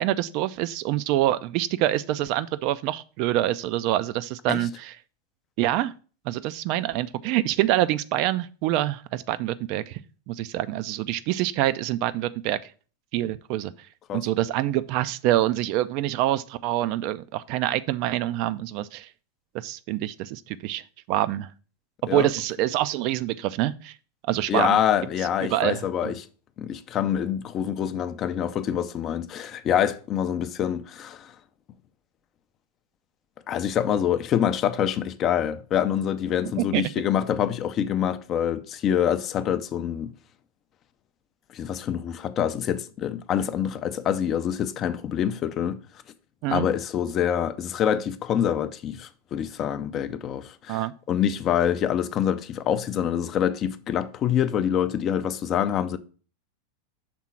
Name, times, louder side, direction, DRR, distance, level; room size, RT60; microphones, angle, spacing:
voice 1, 0.0-4.9 5.6-5.9 6.3-10.0 10.3-12.6 13.1-13.7 14.1-19.1 19.5-20.8 21.1-21.5 22.1-23.9 24.3-24.8 25.5-26.2 36.6-36.8 46.4-46.7 50.7-50.9, right 14 dB, 45° right, 0.4 m, -26 dB
voice 2, 24.5-26.3 26.6-31.3 33.5-40.1 41.5-45.8 46.5-56.0, left 9 dB, 30° left, 0.5 m, -26 dB
6.0 x 3.7 x 5.7 m
figure-of-eight pair, 90°, 0 cm